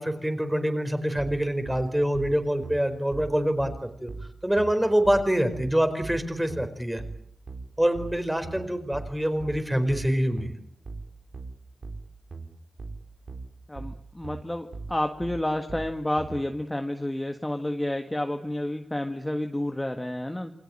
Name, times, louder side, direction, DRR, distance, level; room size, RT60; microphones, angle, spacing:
voice 1, 0.0-4.1 4.4-7.0 7.8-10.5, equal, 5° right, 8 dB, 4.6 m, -25 dB
sound 1, 1.2-16.4, right 3 dB, 60° right, 4.2 m, -40 dB
voice 2, 13.7-20.5, left 1 dB, 10° left, 5 dB, 1.7 m, -30 dB
28.5 x 21.5 x 8.9 m, 0.67 s
wide cardioid pair, 125°, 0 cm